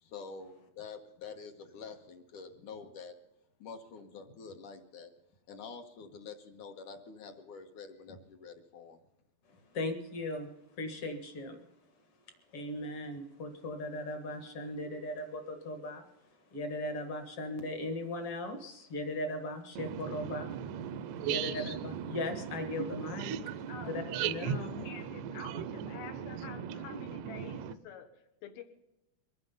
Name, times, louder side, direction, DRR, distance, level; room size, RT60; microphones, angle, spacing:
voice 1, 0.0-3.1 3.6-5.1 5.5-9.0, left 5 dB, 65° left, 5 dB, 2.4 m, -47 dB
voice 2, 9.7-10.5 10.8-11.6 12.5-16.1 16.5-20.5 21.2-23.3 23.8-24.9, left 1 dB, 50° left, 7 dB, 2.0 m, -38 dB
voice 3, 19.8-27.7, right 8 dB, 80° right, 11 dB, 1.7 m, -38 dB
voice 4, 24.8-28.6, left 8 dB, 85° left, 8 dB, 3.3 m, -48 dB
23.5 x 9.7 x 5.5 m, 0.88 s
omnidirectional pair, 4.2 m